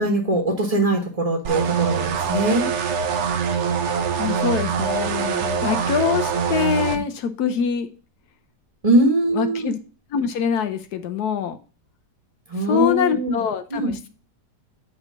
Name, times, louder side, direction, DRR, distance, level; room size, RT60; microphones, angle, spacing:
voice 1, 0.0-2.7 6.8-7.0 8.8-9.7 12.5-13.4 13.7-13.9, right 1 dB, 25° right, 1 dB, 1.2 m, -21 dB
sound 1, 1.4-7.0, right 6 dB, 55° right, 0.9 m, -24 dB
voice 2, 4.2-7.9 9.3-9.8 10.1-11.6 12.7-14.1, left 7 dB, 70° left, 9 dB, 1.1 m, -24 dB
8.7 x 2.9 x 5.7 m, 0.36 s
omnidirectional pair, 1.8 m